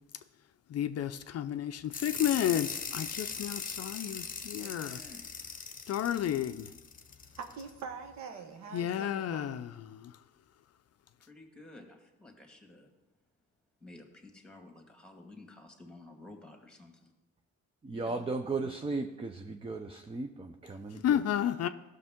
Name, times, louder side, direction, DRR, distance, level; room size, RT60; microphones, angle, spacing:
voice 1, 0.7-5.0 5.9-6.7 8.7-10.2 21.0-21.7, left 10 dB, 55° left, 0.5 m, -32 dB
sound 1, 1.9-7.7, left 5 dB, 30° left, 0.9 m, -40 dB
voice 2, 4.6-5.2 11.3-12.9 13.8-17.1 17.9-18.3 18.6-18.8, left 2 dB, 5° left, 2.0 m, -52 dB
voice 3, 7.4-9.6, right 5 dB, 65° right, 1.2 m, -44 dB
voice 4, 17.8-21.0, right 3 dB, 20° right, 0.6 m, -36 dB
15.0 x 6.4 x 3.7 m
cardioid pair, 90°, 30 cm